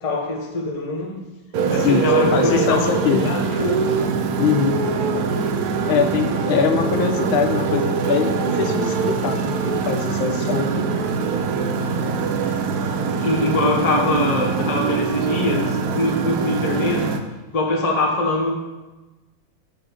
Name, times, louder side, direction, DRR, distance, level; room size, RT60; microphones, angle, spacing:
voice 1, 0.0-1.2 1.7-3.8 13.2-17.1 17.5-18.6, left 2 dB, 40° left, 0 dB, 0.5 m, -23 dB
Motorcycle, 1.5-17.2, right 5 dB, 70° right, 0.9 m, -23 dB
voice 2, 1.8-3.3 4.4-4.8 5.9-9.6 9.9-10.9, left 7 dB, 90° left, 6 dB, 1.5 m, -22 dB
6.3 x 5.0 x 4.9 m, 1.1 s
omnidirectional pair, 2.2 m